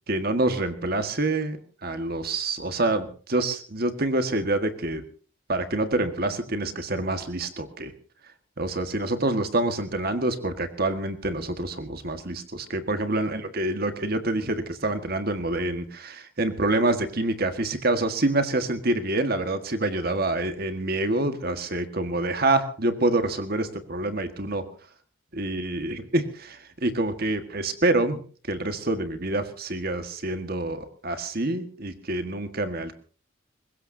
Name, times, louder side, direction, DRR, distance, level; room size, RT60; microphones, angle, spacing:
voice 1, 0.1-1.6 1.8-5.0 5.5-7.9 8.6-24.6 25.3-28.2 28.5-33.0, right 2 dB, 50° right, 8 dB, 1.7 m, -26 dB
23.0 x 20.5 x 2.8 m, 0.41 s
head